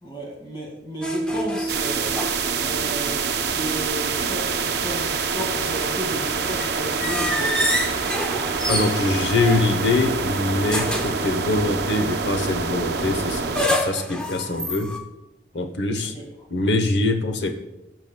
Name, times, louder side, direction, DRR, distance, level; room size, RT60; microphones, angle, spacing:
voice 1, 0.0-7.6 15.5-15.6 16.1-16.2 16.6-16.7, equal, 25° left, -1 dB, 2.0 m, -33 dB
sound 1, 1.0-2.9 3.2-3.3 4.7-10.1 10.7-11.2 13.0-15.0, equal, 5° left, 0.8 m, -28 dB
sound 2, 1.7-13.7, right 5 dB, 65° right, 0.7 m, -26 dB
voice 2, 8.7-15.0 15.5-16.1 16.5-17.6, left 2 dB, 80° left, 6 dB, 0.9 m, -23 dB
14.5 x 6.1 x 2.2 m, 0.93 s
head